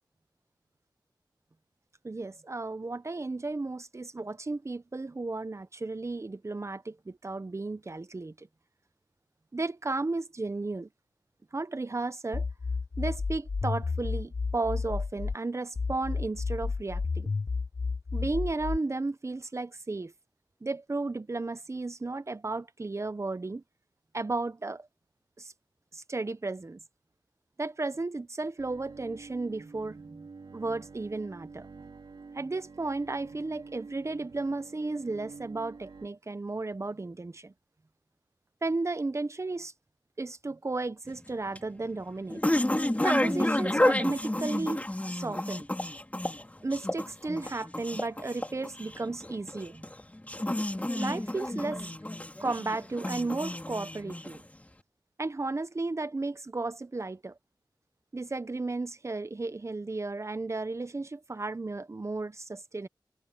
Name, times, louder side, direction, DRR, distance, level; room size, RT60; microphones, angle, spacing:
voice 1, 2.0-8.5 9.5-10.9 11.5-12.5 13.0-17.3 18.1-20.1 20.6-23.6 24.1-24.9 25.4-25.5 25.9-26.8 27.6-30.3 30.5-31.7 32.3-37.5 38.6-39.7 40.2-42.4 43.0-44.8 45.2-45.6 46.6-49.9 50.9-51.9 52.4-54.4 55.2-57.4 58.1-62.9, right 3 dB, 40° right, 1.0 m, -34 dB
sound 1, 12.3-15.4 15.8-18.8, left 4 dB, 40° left, 0.4 m, -31 dB
Bowed string instrument, 28.6-36.1, right 4 dB, 80° right, 3.6 m, -48 dB
sound 2, 41.1-54.6, left 1 dB, 20° left, 3.4 m, -31 dB
cardioid pair, 50°, 8 cm